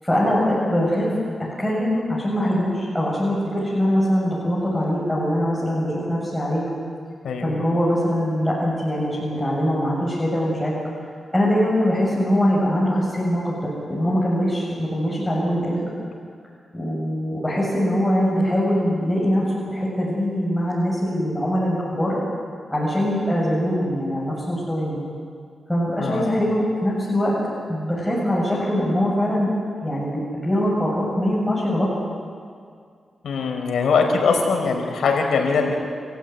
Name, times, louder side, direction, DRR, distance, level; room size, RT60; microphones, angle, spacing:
voice 1, 0.0-1.1 1.6-6.6 7.4-10.7 11.3-15.8 16.7-22.2 22.7-25.0 25.7-27.4 27.7-29.5 29.8-31.9, equal, 10° left, -7 dB, 7.6 m, -22 dB
voice 2, 26.0-26.3 33.2-35.7, left 5 dB, 90° left, 2 dB, 4.7 m, -21 dB
28.0 x 15.5 x 9.6 m, 2.2 s
cardioid pair, 75°, 0 cm